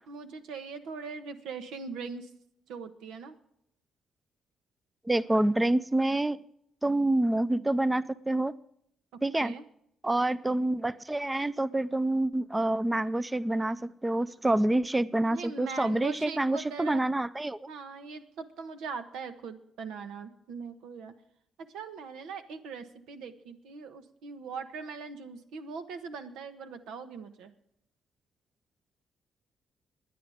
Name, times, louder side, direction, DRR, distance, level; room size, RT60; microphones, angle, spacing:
voice 1, 0.1-2.3 2.7-3.4 9.1-9.6 15.3-17.0 17.7-21.1 21.6-27.5, right 5 dB, 90° right, 8 dB, 1.3 m, -41 dB
voice 2, 5.1-6.4 6.8-8.5 9.2-9.5 10.0-17.6, right 1 dB, 15° right, 16 dB, 0.5 m, -27 dB
22.0 x 9.7 x 3.5 m, 0.72 s
cardioid pair, 90°, 0 cm